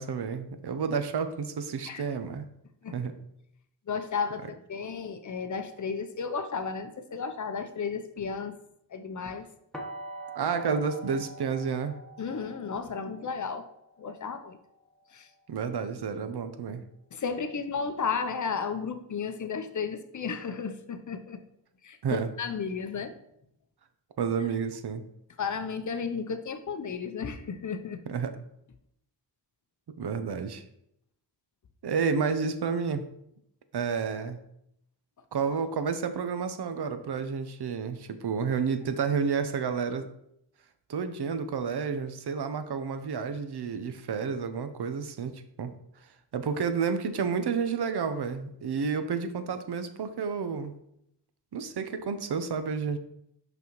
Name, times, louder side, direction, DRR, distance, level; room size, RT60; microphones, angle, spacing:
voice 1, 0.0-2.4 2.9-3.1 10.3-12.0 15.5-16.8 22.0-22.3 24.2-25.0 28.1-28.4 30.0-30.6 31.8-33.0 33.7-34.4 35.3-40.1 40.9-45.7 46.3-50.7 51.5-53.0, right 6 dB, 60° right, 9 dB, 0.7 m, -30 dB
voice 2, 3.9-4.4 4.7-8.5 8.9-9.5 12.2-13.7 14.0-14.6 15.1-15.3 17.1-21.4 21.8-23.1 25.4-28.0, left 5 dB, 40° left, 9 dB, 0.6 m, -33 dB
sound 1, 9.7-15.6, right 2 dB, ahead, 1.1 m, -45 dB
5.9 x 5.2 x 3.0 m, 0.76 s
cardioid pair, 70°, 44 cm